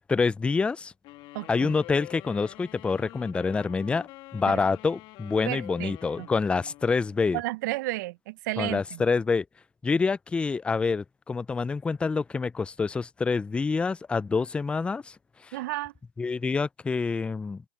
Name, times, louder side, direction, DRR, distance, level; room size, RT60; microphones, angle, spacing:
voice 1, 0.1-0.9 1.5-4.1 4.3-7.4 8.6-9.4 9.8-15.1 16.2-17.6, left 4 dB, 10° left, 0.4 m, -27 dB
sound 1, 1.0-7.4, left 19 dB, 40° left, 2.2 m, -47 dB
voice 2, 1.3-1.7 4.5-4.6 5.5-6.3 7.3-9.0 15.5-15.9, right 19 dB, 60° right, 0.7 m, -33 dB
hypercardioid pair, 120°, 11 cm